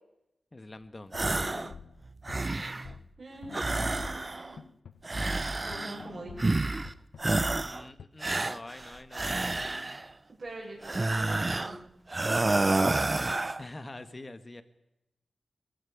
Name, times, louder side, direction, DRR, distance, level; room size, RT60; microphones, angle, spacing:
voice 1, 0.5-1.2 7.5-10.0 13.6-14.6, left 2 dB, 30° left, 11 dB, 1.9 m, -46 dB
sound 1, 0.8-0.9 1.1-5.4 5.7-8.0, left 6 dB, 85° left, 1.2 m, -47 dB
sound 2, 1.1-1.7 2.1-2.9 3.5-4.6 5.0-6.1 6.4-6.9 7.2-7.8 8.2-10.1 10.8-11.8 12.1-13.6, right 2 dB, 30° right, 0.8 m, -29 dB
voice 2, 3.2-4.6 5.6-6.5 10.4-11.8 12.4-12.8, right 2 dB, 50° right, -2 dB, 6.5 m, -44 dB
21.5 x 15.0 x 9.6 m, 0.88 s
wide cardioid pair, 75°, 0 cm